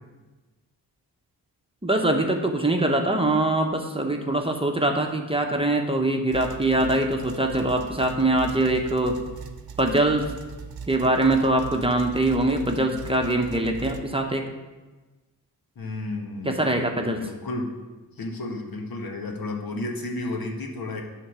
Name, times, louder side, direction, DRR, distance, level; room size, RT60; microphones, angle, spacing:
voice 1, 1.8-9.2 9.8-10.3 10.9-14.4 16.4-17.2, right 2 dB, 15° right, 3 dB, 0.9 m, -23 dB
sound 1, 6.3-14.0, right 5 dB, 70° right, 0.8 m, -39 dB
voice 2, 15.7-17.8 18.2-21.0, left 2 dB, 65° left, 1 dB, 1.5 m, -32 dB
9.7 x 3.7 x 6.2 m, 1.2 s
cardioid pair, 80°, 37 cm